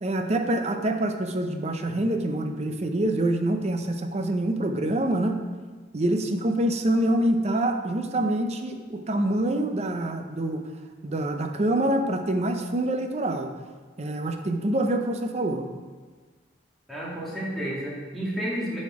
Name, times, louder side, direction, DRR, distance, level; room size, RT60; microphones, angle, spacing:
voice 1, 0.0-5.4 5.9-10.6 11.0-13.5 14.0-15.7, right 1 dB, 35° right, 6 dB, 0.6 m, -26 dB
voice 2, 16.9-18.8, equal, ahead, -7 dB, 1.9 m, -31 dB
8.3 x 4.4 x 4.7 m, 1.4 s
head